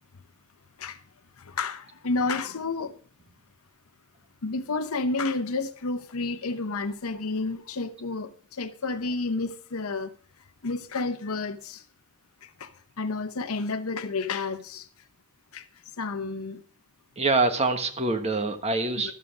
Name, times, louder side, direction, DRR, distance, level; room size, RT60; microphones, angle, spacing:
voice 1, 1.4-2.9 4.4-10.1 10.6-11.8 12.4-12.7 13.0-14.9 15.5-15.6 16.0-16.6 19.0-19.1, left 3 dB, 75° left, 0.8 m, -30 dB
voice 2, 17.2-19.1, right 3 dB, 30° right, 1.4 m, -25 dB
12.5 x 7.6 x 6.1 m
head